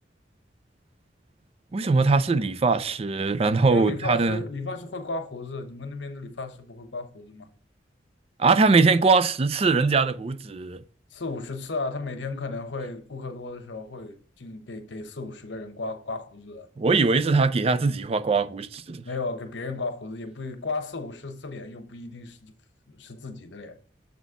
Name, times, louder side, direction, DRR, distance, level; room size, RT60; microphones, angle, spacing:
voice 1, 1.7-4.4 8.4-10.8 16.8-19.0, right 4 dB, 35° right, 0.4 m, -21 dB
voice 2, 3.7-7.5 11.1-16.7 19.0-22.5 22.9-23.8, left 3 dB, 80° left, 0.9 m, -35 dB
7.1 x 4.1 x 4.8 m
head